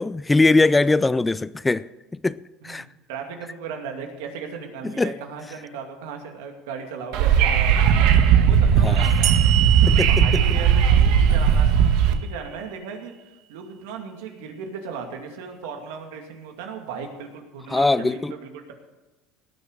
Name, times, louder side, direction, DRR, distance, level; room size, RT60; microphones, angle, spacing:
voice 1, 0.0-2.8 4.8-5.2 8.8-9.1 9.9-10.4 17.7-18.3, left 3 dB, 10° left, 0.3 m, -21 dB
voice 2, 3.1-9.7 10.1-11.7 12.1-13.1 13.5-18.7, right 6 dB, 85° right, 2.4 m, -36 dB
Wind / Subway metro underground, 7.1-12.1, right 8 dB, 70° right, 1.3 m, -17 dB
sound 1, 9.2-12.6, right 13 dB, 55° right, 0.7 m, -29 dB
18.5 x 6.8 x 6.7 m
supercardioid pair, 125°, 0 cm